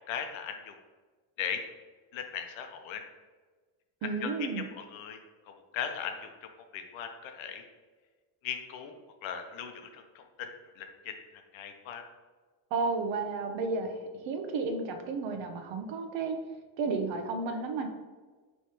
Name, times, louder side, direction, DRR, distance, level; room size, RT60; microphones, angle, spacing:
voice 1, 0.1-0.7 1.4-1.6 2.1-3.0 4.0-4.3 4.6-5.2 5.7-7.6 8.4-8.9 9.2-10.5 10.8-11.1 11.5-12.0, left 8 dB, 65° left, 6 dB, 0.7 m, -38 dB
voice 2, 4.0-4.7 12.7-16.4 16.8-17.9, right 4 dB, 60° right, 5 dB, 0.7 m, -32 dB
4.7 x 3.2 x 2.8 m, 1.4 s
cardioid pair, 140°, 50 cm